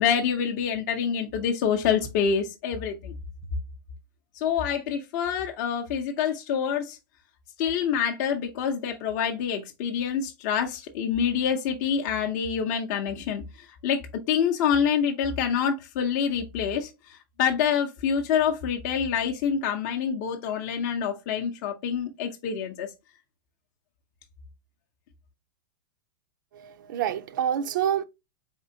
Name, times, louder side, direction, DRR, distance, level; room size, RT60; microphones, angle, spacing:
voice 1, 0.0-3.1 4.3-7.0 7.6-14.0 14.3-22.9, left 7 dB, 45° left, 0.6 m, -26 dB
voice 2, 26.5-28.0, right 9 dB, 60° right, 0.4 m, -27 dB
4.2 x 3.6 x 2.7 m
supercardioid pair, 150°, 12 cm